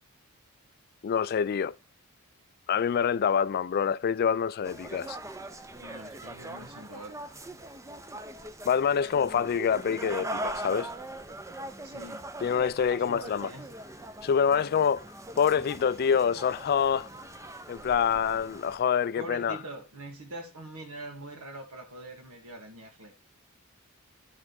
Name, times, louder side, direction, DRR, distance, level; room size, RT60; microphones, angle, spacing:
voice 1, 1.0-1.8 2.7-5.2 8.7-10.9 12.4-13.5 14.2-15.0 15.4-17.1 17.7-19.6, left 7 dB, 45° left, 0.3 m, -26 dB
sound 1, 4.6-18.8, right 1 dB, 15° right, 0.6 m, -41 dB
voice 2, 5.8-7.1 7.5-7.7 11.8-12.3 13.0-13.7 14.5-14.7 19.2-23.1, right 1 dB, 80° right, 2.2 m, -43 dB
11.0 x 4.4 x 4.2 m
head